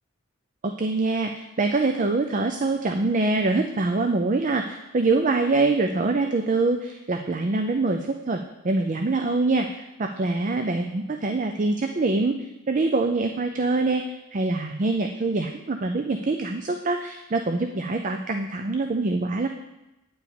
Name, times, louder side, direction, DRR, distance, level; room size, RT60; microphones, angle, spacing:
voice 1, 0.6-14.0 14.3-19.5, right 3 dB, 35° right, 5 dB, 0.5 m, -24 dB
9.3 x 4.9 x 7.0 m, 0.96 s
head